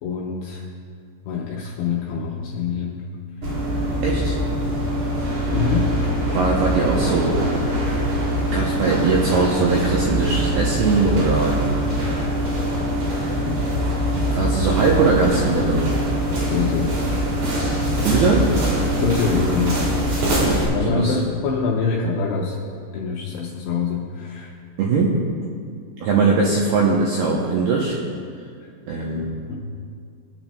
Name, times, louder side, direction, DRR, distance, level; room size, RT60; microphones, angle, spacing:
voice 1, 0.0-0.7 1.3-3.1 3.4-3.5 5.5-6.0 13.4-13.6 16.5-16.9 19.0-19.8 20.7-24.6 28.6-28.7 29.2-29.6, left 5 dB, 85° left, -1 dB, 2.4 m, -25 dB
sound 1, 3.4-20.6, equal, 60° right, 4.4 m, -23 dB
voice 2, 4.0-4.4 6.3-7.5 8.5-11.6 14.3-15.9 18.0-18.5 20.3-21.1 24.8-25.2 26.0-28.0 28.9-29.4, right 4 dB, 80° right, -4 dB, 2.3 m, -20 dB
21.0 x 8.9 x 2.3 m, 2.2 s
omnidirectional pair, 5.6 m